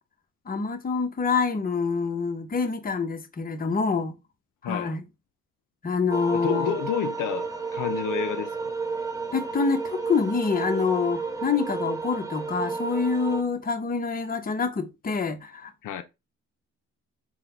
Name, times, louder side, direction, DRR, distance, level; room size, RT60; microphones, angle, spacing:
voice 1, 0.5-4.1 4.6-5.0 5.8-6.7 9.3-15.7, left 5 dB, 25° left, 0.7 m, -26 dB
voice 2, 4.6-4.9 6.3-8.7 15.8-16.0, left 9 dB, 70° left, 0.5 m, -30 dB
sound 1, 6.1-13.4, right 4 dB, 10° right, 0.6 m, -32 dB
3.7 x 2.2 x 4.3 m
cardioid pair, 80°, 32 cm